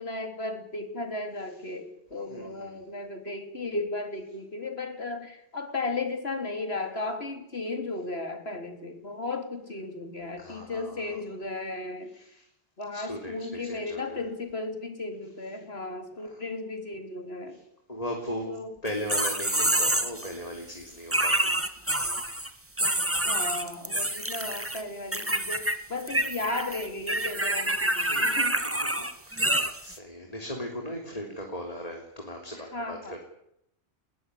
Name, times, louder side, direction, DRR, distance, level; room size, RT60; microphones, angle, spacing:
voice 1, 0.0-12.4 12.8-17.6 18.5-18.8 23.2-28.6 32.5-33.2, left 2 dB, 65° left, 6 dB, 3.7 m, -35 dB
voice 2, 2.3-2.8 10.4-11.2 12.1-12.3 12.9-14.2 16.2-16.3 17.9-18.5 18.8-21.6 22.1-22.4 28.0-28.2 29.0-33.2, equal, 35° left, 1 dB, 3.8 m, -38 dB
sound 1, 18.9-20.3 21.1-22.5 22.8-24.8 25.1-25.8 26.0-29.9, right 1 dB, 10° right, 1.6 m, -27 dB
21.5 x 20.5 x 10.0 m, 0.78 s
omnidirectional pair, 1.1 m